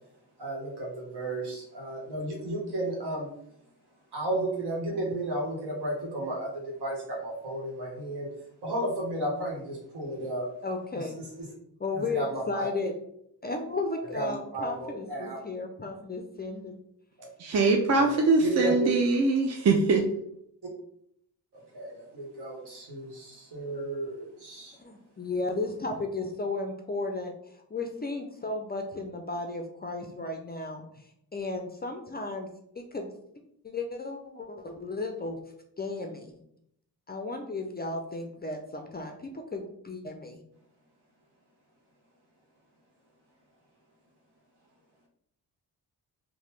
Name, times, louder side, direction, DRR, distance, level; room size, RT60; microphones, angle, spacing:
voice 1, 0.4-3.3 4.1-8.3 8.6-10.5 10.9-11.0 12.1-12.7 14.1-15.4 17.2-17.3 18.0-18.9 21.5-24.8, right 1 dB, 65° right, -2 dB, 1.2 m, -33 dB
voice 2, 10.6-11.2 11.8-12.9 13.4-16.8 24.8-27.3 27.7-30.8 31.3-32.5 32.8-33.1 33.6-35.4 35.8-36.3 37.1-40.4, left 3 dB, 25° left, 3 dB, 0.4 m, -34 dB
voice 3, 17.4-20.0, right 3 dB, 40° right, 2 dB, 0.4 m, -23 dB
2.9 x 2.2 x 3.1 m, 0.73 s
supercardioid pair, 55°, 44 cm